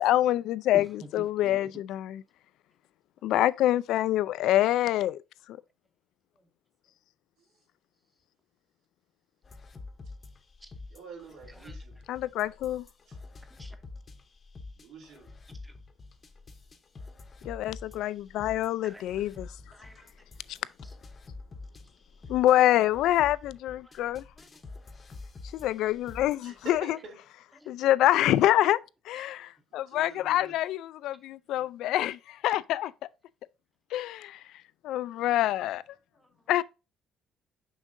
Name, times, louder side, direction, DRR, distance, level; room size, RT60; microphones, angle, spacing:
voice 1, 0.0-2.2 3.2-5.2 12.1-12.8 17.5-19.5 20.5-20.6 22.3-24.2 25.5-26.8 27.7-28.8 29.1-32.9 33.9-34.4 34.8-35.8 36.5-36.6, left 13 dB, 75° left, 0.3 m, -26 dB
voice 2, 0.7-1.8 4.6-4.7 6.4-6.5 10.6-10.7 11.5-11.8 13.5-13.8 15.6-15.8 18.8-19.0 19.7-20.1 20.8-21.0 23.6-24.5 27.0-27.1 27.5-27.7 29.1-29.4 30.4-30.5 31.6-31.7 32.8-32.9 36.1-36.6, right 1 dB, 5° right, 0.8 m, -49 dB
sound 1, 9.4-26.8, left 3 dB, 25° left, 0.8 m, -47 dB
voice 3, 10.9-12.0 13.1-13.2 14.7-15.3 26.4-27.1 29.9-30.5, right 4 dB, 85° right, 3.2 m, -47 dB
6.4 x 6.3 x 2.6 m
cardioid pair, 165°, 0 cm